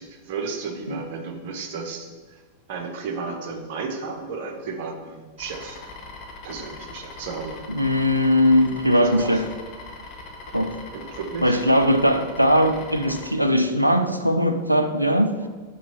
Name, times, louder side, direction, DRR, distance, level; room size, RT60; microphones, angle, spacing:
voice 1, 0.0-2.4 2.7-5.8 6.4-7.6 9.0-9.4 10.9-11.6 12.1-12.2 15.4-15.5, right 4 dB, 50° right, 3 dB, 1.2 m, -33 dB
sound 1, 5.4-13.3, left 3 dB, 35° left, 1.3 m, -41 dB
voice 2, 7.7-9.5 10.5-10.7 11.4-15.3, equal, 90° right, 7 dB, 0.5 m, -20 dB
6.0 x 5.3 x 5.7 m, 1.5 s
figure-of-eight pair, 90°, 0 cm